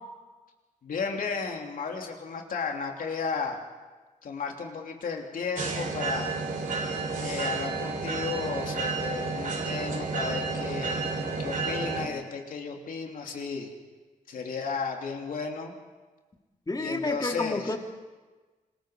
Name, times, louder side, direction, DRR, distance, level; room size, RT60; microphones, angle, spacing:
voice 1, 0.8-3.6 4.2-6.4 7.2-11.1 11.4-13.7 14.3-15.7 16.8-17.7, left 5 dB, 75° left, 2 dB, 3.1 m, -34 dB
sound 1, 5.6-12.1, right 4 dB, 65° right, 3.8 m, -31 dB
voice 2, 16.7-17.8, left 2 dB, 25° left, 3 dB, 2.5 m, -30 dB
26.5 x 21.0 x 5.2 m, 1.3 s
cardioid pair, 70°, 14 cm